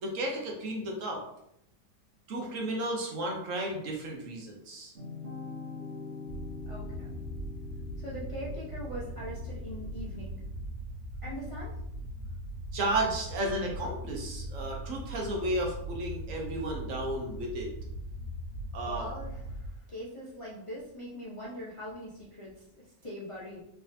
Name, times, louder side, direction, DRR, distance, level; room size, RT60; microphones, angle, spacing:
voice 1, 0.0-1.2 2.3-4.9 12.7-17.7 18.7-19.1, right 1 dB, 75° right, 0 dB, 1.2 m, -33 dB
sound 1, 4.9-10.4, left 4 dB, 55° right, 1.3 m, -44 dB
sound 2, 6.3-19.7, right 1 dB, 80° left, 1.4 m, -40 dB
voice 2, 6.7-7.2 8.0-10.4 11.2-11.7 18.9-23.6, equal, 30° left, -7 dB, 0.6 m, -42 dB
3.5 x 3.3 x 2.7 m, 0.80 s
omnidirectional pair, 1.4 m